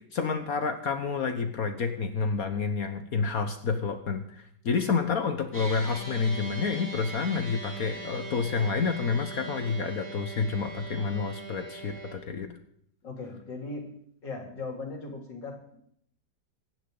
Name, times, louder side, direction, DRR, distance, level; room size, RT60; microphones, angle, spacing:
voice 1, 0.1-12.5, left 5 dB, 55° left, 8 dB, 1.4 m, -29 dB
sound 1, 5.5-12.1, right 3 dB, 5° left, 7.0 m, -40 dB
voice 2, 13.0-13.9 14.2-15.8, left 3 dB, 80° left, 1 dB, 3.7 m, -38 dB
26.0 x 10.5 x 3.9 m, 0.69 s
omnidirectional pair, 1.9 m